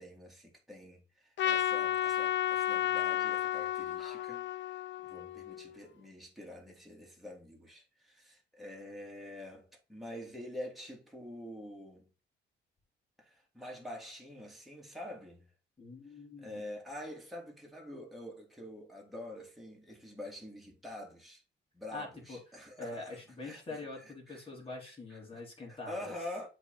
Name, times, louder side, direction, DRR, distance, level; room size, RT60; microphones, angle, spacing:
voice 1, 0.0-12.1 13.2-15.5 16.4-21.4 21.7-24.5 24.8-25.4 25.7-26.5, left 1 dB, ahead, 3.1 m, -46 dB
Trumpet, 1.4-5.8, left 11 dB, 65° left, 0.7 m, -32 dB
voice 2, 15.8-16.6 21.9-26.1, left 2 dB, 30° left, 3.9 m, -44 dB
7.8 x 4.4 x 4.0 m
cardioid pair, 90°, 20 cm